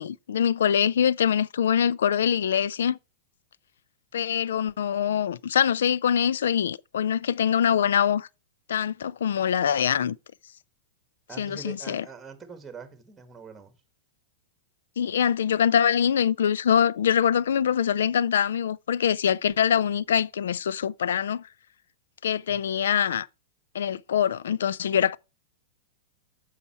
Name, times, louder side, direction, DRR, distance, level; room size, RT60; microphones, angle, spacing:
voice 1, 0.0-3.0 4.1-8.3 8.7-10.2 11.4-12.0 15.0-21.4 22.2-23.3 23.7-25.2, left 8 dB, 85° left, 0.4 m, -24 dB
voice 2, 11.3-13.8 22.5-22.6, right 5 dB, 10° right, 1.8 m, -43 dB
8.2 x 5.7 x 4.4 m
hypercardioid pair, 130°, 0 cm